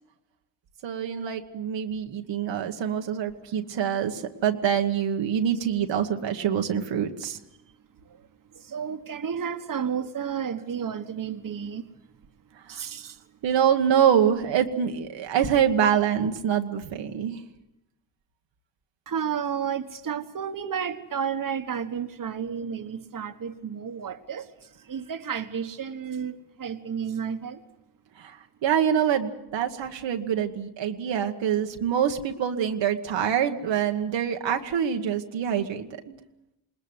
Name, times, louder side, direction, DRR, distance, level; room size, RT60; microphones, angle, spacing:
voice 1, 0.8-7.4 12.7-12.8 13.4-17.4 28.2-28.4 28.6-36.2, right 8 dB, 85° right, 4 dB, 1.4 m, -25 dB
voice 2, 8.0-11.9 12.7-13.2 19.1-27.6, right 7 dB, 50° right, 8 dB, 1.4 m, -32 dB
21.0 x 19.5 x 8.0 m, 0.91 s
cardioid pair, 70°, 43 cm